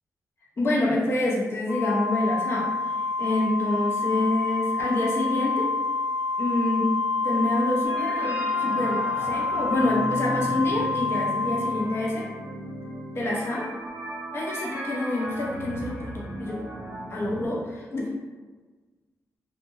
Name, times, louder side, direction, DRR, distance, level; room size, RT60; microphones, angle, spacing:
voice 1, 0.6-5.7 6.4-6.9 7.2-12.2 13.1-13.6 14.3-16.6 17.1-18.1, left 2 dB, 45° left, -3 dB, 0.6 m, -27 dB
Organ, 1.7-12.4, left 3 dB, 70° right, 0.7 m, -28 dB
sound 1, 7.8-17.5, equal, 30° right, 0.7 m, -36 dB
2.2 x 2.1 x 3.0 m, 1.3 s
wide cardioid pair, 150°, 6 cm